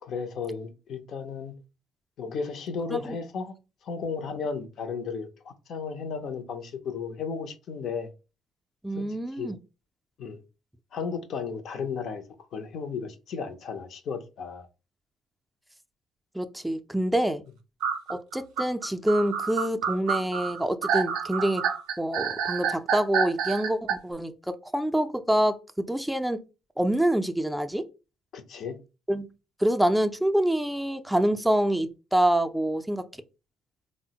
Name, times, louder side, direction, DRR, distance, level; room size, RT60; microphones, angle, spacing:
voice 1, 0.0-1.6 2.2-3.5 3.8-8.1 8.9-9.5 10.2-10.4 10.9-12.2 12.5-14.7 28.3-28.8, left 5 dB, 60° left, 0.5 m, -34 dB
voice 2, 8.8-9.6 16.3-17.4 18.1-21.6 22.0-26.4 26.8-27.9 29.1-29.3 29.6-33.0, right 1 dB, 5° right, 0.4 m, -26 dB
sound 1, 17.8-23.9, right 7 dB, 75° right, 0.4 m, -28 dB
3.4 x 2.0 x 2.8 m
hypercardioid pair, 60°, 0 cm